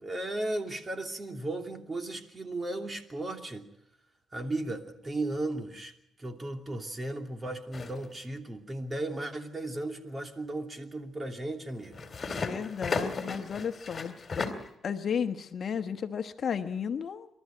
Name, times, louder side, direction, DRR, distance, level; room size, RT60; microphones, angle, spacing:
voice 1, 0.0-3.7 4.3-5.9 6.2-12.1, right 2 dB, 25° right, 4 dB, 2.9 m, -35 dB
sound 1, 7.7-8.1 11.8-14.7, left 4 dB, 35° left, 3.0 m, -35 dB
voice 2, 12.3-14.5 14.8-17.3, left 7 dB, 55° left, 8 dB, 1.2 m, -33 dB
27.5 x 13.0 x 9.3 m, 0.81 s
cardioid pair, 90°, 0 cm